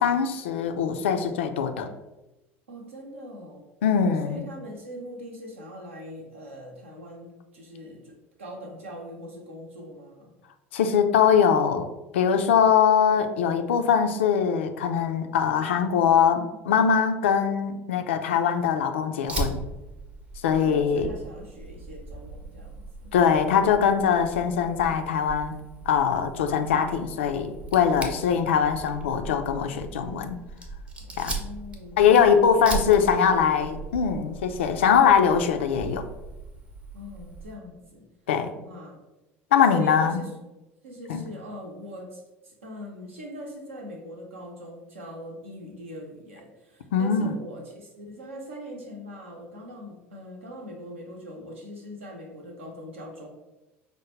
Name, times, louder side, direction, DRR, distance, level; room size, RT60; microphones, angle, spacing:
voice 1, 0.0-1.9 3.8-4.5 10.7-11.9 12.1-19.6 20.4-21.1 23.1-25.5 25.9-30.4 31.2-31.3 32.0-36.1 38.3-38.5 39.5-40.2 41.1-41.2 46.9-47.4, left 7 dB, 65° left, 7 dB, 0.3 m, -22 dB
voice 2, 2.7-3.6 4.2-10.3 12.3-12.5 18.3-18.4 20.6-23.1 27.9-28.5 31.0-33.0 36.9-38.1 38.6-39.0 39.7-40.3 40.8-53.3, equal, 75° right, 1 dB, 0.7 m, -42 dB
Fire, 19.3-37.5, right 3 dB, 15° right, 0.6 m, -38 dB
5.0 x 2.1 x 3.1 m, 1.0 s
figure-of-eight pair, 65°, 7 cm